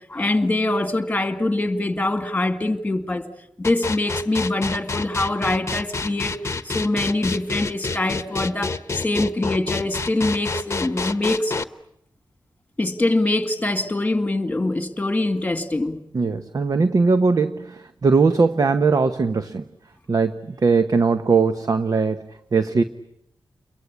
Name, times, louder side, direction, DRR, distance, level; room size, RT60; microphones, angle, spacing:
voice 1, 0.1-3.2 3.6-6.4 6.6-11.5 12.8-16.0, left 2 dB, 15° left, 2.2 m, -23 dB
sound 1, 3.6-11.6, left 4 dB, 35° left, 1.1 m, -28 dB
voice 2, 16.1-19.6 20.1-22.8, right 4 dB, 45° right, 1.0 m, -20 dB
30.0 x 22.5 x 8.4 m
wide cardioid pair, 120°, 8 cm